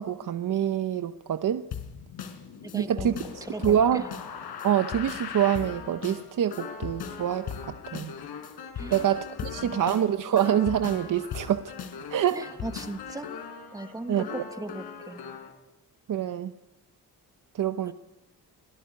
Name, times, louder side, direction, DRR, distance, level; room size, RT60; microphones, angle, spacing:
voice 1, 0.0-1.6 2.7-4.0 4.6-7.5 7.9-8.1 8.9-11.7 12.1-12.5 14.1-14.4 16.1-16.5 17.5-17.9, right 10 dB, 55° right, 9 dB, 0.9 m, -26 dB
sound 1, 1.7-15.5, left 7 dB, 90° left, 4.2 m, -39 dB
voice 2, 2.6-4.1 8.7-9.1 9.5-9.8 12.3-13.4 13.7-15.2 17.8-17.9, right 2 dB, 10° right, 8 dB, 1.4 m, -38 dB
26.5 x 18.5 x 9.5 m, 1.0 s
wide cardioid pair, 155°, 38 cm